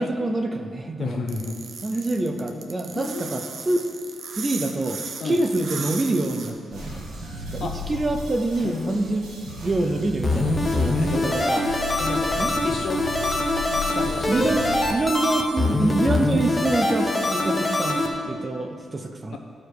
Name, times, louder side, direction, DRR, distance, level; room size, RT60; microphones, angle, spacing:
voice 1, 0.0-1.2 1.8-3.8 4.4-7.1 7.5-9.3 9.6-11.6 12.4-12.5 14.3-14.6 14.9-19.4, right 2 dB, 20° right, 5 dB, 0.4 m, -26 dB
voice 2, 1.0-1.6 1.9-2.0 2.4-2.6 2.9-3.4 5.2-5.4 7.6-7.8 8.6-9.0 10.9-11.4 12.0-13.0 13.8-14.6 19.3-19.4, left 4 dB, 55° left, 3 dB, 0.8 m, -32 dB
sound 1, 1.3-6.5, right 5 dB, 50° right, 0.8 m, -36 dB
sound 2, 6.7-14.8, left 1 dB, 75° right, 1.8 m, -35 dB
sound 3, 10.2-18.1, left 2 dB, 15° left, 0.7 m, -24 dB
13.0 x 4.9 x 4.7 m, 2.2 s
wide cardioid pair, 180°, 0 cm